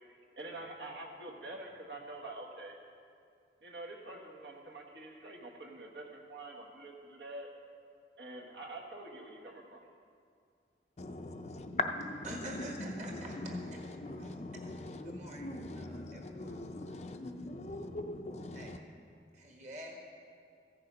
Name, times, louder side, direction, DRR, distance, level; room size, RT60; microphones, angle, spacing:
voice 1, 0.0-2.8 3.6-7.5 8.2-9.8, right 2 dB, 75° right, 0 dB, 1.4 m, -46 dB
voice 2, 11.0-18.8, left 2 dB, 40° left, 6 dB, 0.5 m, -41 dB
voice 3, 12.3-13.6 14.2-14.3 14.6-14.7 15.1-16.6 17.0-17.1 18.5-18.7 19.3-20.0, right 1 dB, 40° right, 0 dB, 1.6 m, -46 dB
14.5 x 6.8 x 5.1 m, 2.3 s
head